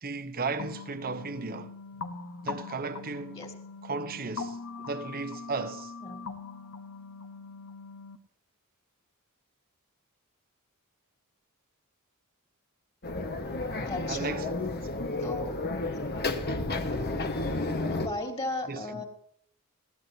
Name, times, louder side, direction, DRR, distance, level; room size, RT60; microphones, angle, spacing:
voice 1, 0.0-1.7 2.4-3.4 3.8-4.6 4.9-5.9 13.5-13.6 14.1-14.5 16.5-16.6 18.7-19.0, right 4 dB, 40° right, 1.0 m, -35 dB
sound 1, 0.6-8.2, left 4 dB, 65° left, 1.3 m, -41 dB
sound 2, 13.0-18.1, left 2 dB, 45° left, 1.4 m, -31 dB
voice 2, 13.7-14.5 15.2-15.6 17.9-19.0, left 2 dB, 25° left, 2.8 m, -36 dB
20.5 x 16.0 x 2.8 m
head